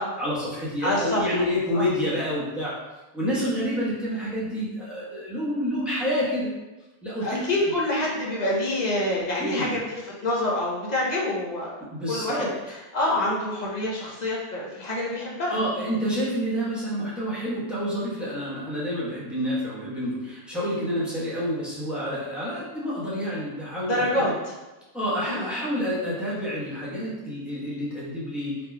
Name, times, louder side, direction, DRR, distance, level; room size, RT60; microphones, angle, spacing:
voice 1, 0.2-2.8 3.1-6.5 7.0-7.5 9.4-9.8 11.8-12.5 15.5-24.3 24.9-28.7, equal, ahead, -9 dB, 0.9 m, -28 dB
voice 2, 0.8-1.2 1.7-1.9 7.2-11.8 12.1-15.6 23.9-24.3 25.3-25.5, left 1 dB, 40° left, -4 dB, 0.7 m, -27 dB
3.9 x 3.2 x 2.2 m, 1.1 s
omnidirectional pair, 1.3 m